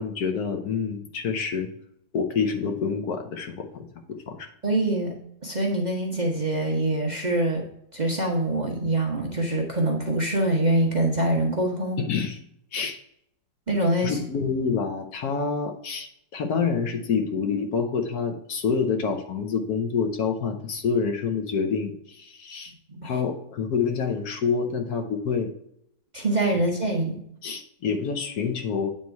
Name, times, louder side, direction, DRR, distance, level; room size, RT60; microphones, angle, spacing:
voice 1, 0.0-1.7 2.1-4.5 12.0-12.4 12.7-13.0 14.0-22.7 23.0-25.5 27.4-28.9, left 5 dB, 65° left, 6 dB, 1.3 m, -27 dB
voice 2, 4.6-5.1 5.4-12.0 13.7-14.2 22.9-23.1 26.1-27.2, right 1 dB, 30° right, -1 dB, 0.9 m, -24 dB
8.7 x 3.7 x 4.5 m, 0.72 s
omnidirectional pair, 1.9 m